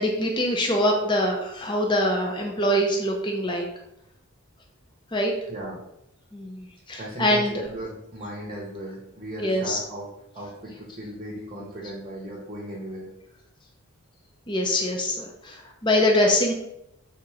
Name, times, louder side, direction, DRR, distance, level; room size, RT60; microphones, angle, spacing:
voice 1, 0.0-3.7 5.1-5.3 6.3-7.6 9.4-9.8 14.5-16.5, left 1 dB, 20° left, 1 dB, 0.5 m, -24 dB
voice 2, 5.5-5.8 6.9-10.1 10.3-13.1, right 1 dB, 25° right, -3 dB, 0.8 m, -37 dB
3.8 x 2.9 x 4.7 m, 0.83 s
head